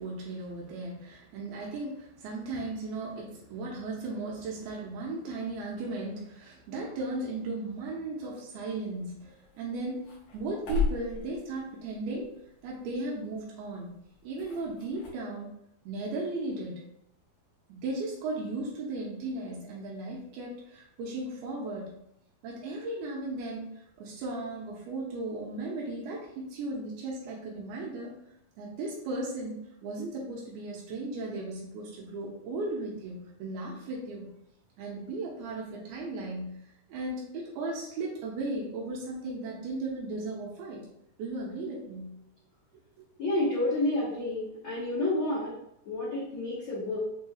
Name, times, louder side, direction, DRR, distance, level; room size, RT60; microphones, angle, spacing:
voice 1, 0.0-10.0 10.3-12.3 12.6-14.0 14.2-15.6 15.9-16.8 17.7-22.0 22.4-23.7 24.0-28.1 28.6-34.3 34.8-36.6 36.9-40.9 41.2-42.2, right 2 dB, 85° right, -4 dB, 2.7 m, -36 dB
sound 1, 8.8-15.1, left 4 dB, 70° left, 1.5 m, -38 dB
voice 2, 43.2-45.5 45.8-47.0, left 2 dB, 85° left, -10 dB, 1.1 m, -29 dB
6.5 x 2.7 x 2.3 m, 0.77 s
omnidirectional pair, 4.3 m